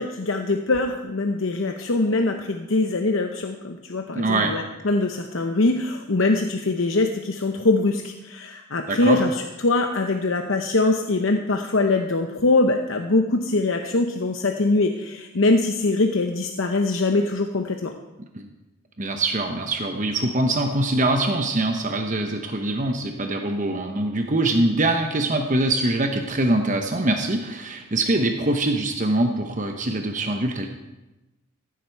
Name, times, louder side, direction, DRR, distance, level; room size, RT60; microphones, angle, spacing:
voice 1, 0.0-17.9, left 2 dB, 65° left, 5 dB, 0.8 m, -23 dB
voice 2, 4.1-4.5 8.9-9.2 18.3-18.5 19.0-30.7, right 2 dB, 35° right, 4 dB, 0.9 m, -23 dB
15.0 x 11.5 x 4.6 m, 1.0 s
head